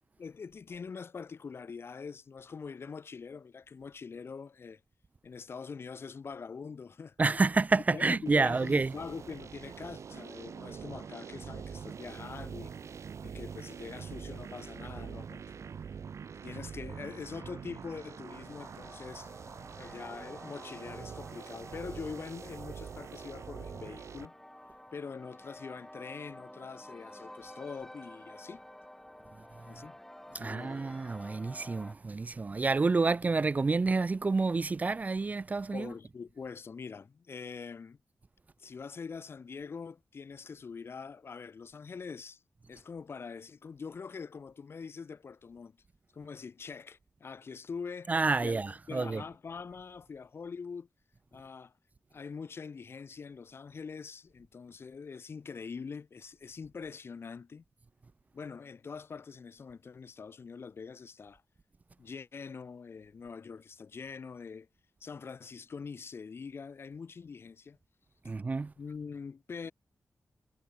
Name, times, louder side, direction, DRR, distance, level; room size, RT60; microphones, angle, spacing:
voice 1, 0.2-4.8 5.2-7.2 7.9-12.7 13.2-15.6 16.4-19.3 19.7-24.3 24.9-28.6 29.6-30.0 30.3-30.9 35.7-38.0 38.6-42.4 42.7-45.8 46.1-48.1 48.4-50.9 51.3-51.7 52.1-57.6 58.3-61.4 62.0-64.7 65.0-67.8 68.8-69.7, left 5 dB, 50° left, 1.7 m, -44 dB
voice 2, 7.2-8.9 30.3-35.9 48.1-49.2 68.2-68.7, right 3 dB, 30° right, 0.6 m, -29 dB
sound 1, 8.3-24.3, right 6 dB, 75° right, 3.5 m, -44 dB
sound 2, 18.4-31.9, left 1 dB, 5° left, 3.2 m, -51 dB
wide cardioid pair, 160°, 5 cm